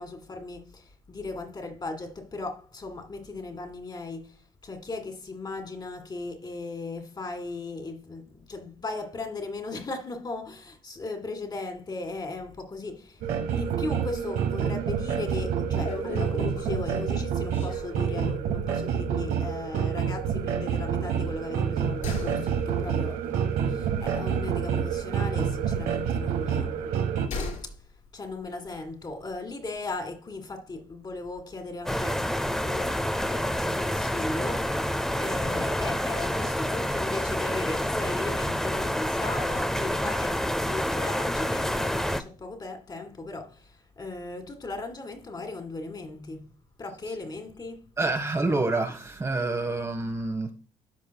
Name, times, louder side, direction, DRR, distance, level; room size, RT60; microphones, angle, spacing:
voice 1, 0.0-13.2 13.5-27.1 27.6-27.7 28.1-46.5 46.8-47.9, left 3 dB, 30° left, 2.0 m, -37 dB
sound 1, 13.2-27.3, right 7 dB, 90° right, 1.2 m, -28 dB
sound 2, 14.9-15.2 15.5-15.6 15.9-18.6 18.9-19.1 19.4-19.5 21.1-25.1 25.3-27.8 28.0-28.1, left 4 dB, 55° left, 3.0 m, -38 dB
sound 3, 31.9-42.2, equal, 5° left, 0.5 m, -28 dB
voice 2, 48.0-50.5, right 2 dB, 20° right, 1.0 m, -27 dB
13.5 x 5.1 x 2.2 m
cardioid pair, 105°, 14 cm